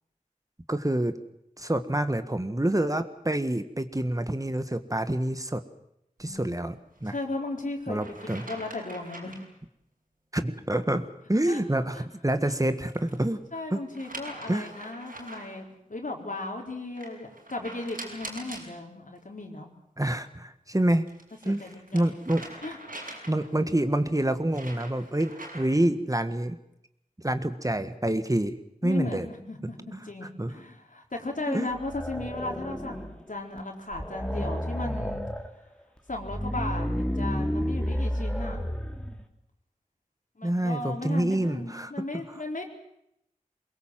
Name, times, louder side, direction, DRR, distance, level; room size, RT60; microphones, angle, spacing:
voice 1, 0.7-1.2 1.6-5.6 6.2-6.7 7.0-7.1 7.9-8.4 10.3-13.4 13.7-13.8 14.5-14.7 20.0-21.1 21.4-21.6 21.9-22.4 23.3-26.6 27.2-28.6 28.8-29.3 29.9-30.0 30.4-30.5 31.5-31.7 40.4-41.9, right 1 dB, 25° right, 10 dB, 1.7 m, -27 dB
voice 2, 6.2-6.7 7.1-8.0 8.3-9.4 11.4-11.6 11.9-12.0 12.5-12.6 13.5-19.7 21.4-22.1 22.6-22.8 28.8-35.2 36.1-38.6 40.4-42.6, left 2 dB, 70° left, 2 dB, 4.3 m, -36 dB
sound 1, 7.0-7.2 8.0-9.5 12.3-13.3 13.9-15.6 17.0-18.7 20.8-23.6 24.2-25.8, right 2 dB, 90° right, 6.3 m, -43 dB
sound 2, 31.7-33.2 33.6-33.7 33.9-35.5 36.1-39.2, equal, 5° left, 2.9 m, -31 dB
23.5 x 21.5 x 7.7 m, 0.78 s
wide cardioid pair, 45°, 14 cm